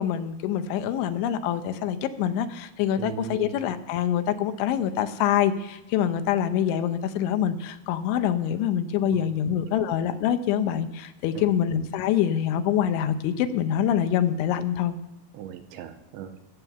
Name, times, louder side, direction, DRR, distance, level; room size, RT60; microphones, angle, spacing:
voice 1, 0.0-15.0, left 9 dB, 80° left, 10 dB, 3.1 m, -25 dB
voice 2, 3.0-3.5 9.1-9.5 11.3-11.5 15.3-16.4, right 9 dB, 80° right, 9 dB, 3.1 m, -39 dB
22.5 x 8.9 x 6.9 m, 0.96 s
omnidirectional pair, 5.6 m